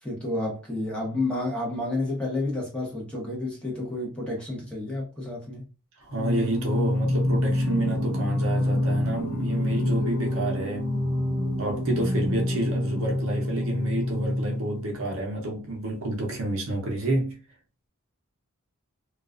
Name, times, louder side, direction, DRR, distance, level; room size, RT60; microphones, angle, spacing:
voice 1, 0.0-5.7, left 2 dB, 5° left, 0.8 m, -30 dB
voice 2, 6.0-10.9 11.6-17.4, right 1 dB, 70° right, 0.6 m, -29 dB
Singing, 6.1-15.0, left 1 dB, 90° left, 0.7 m, -27 dB
2.3 x 2.2 x 2.4 m
head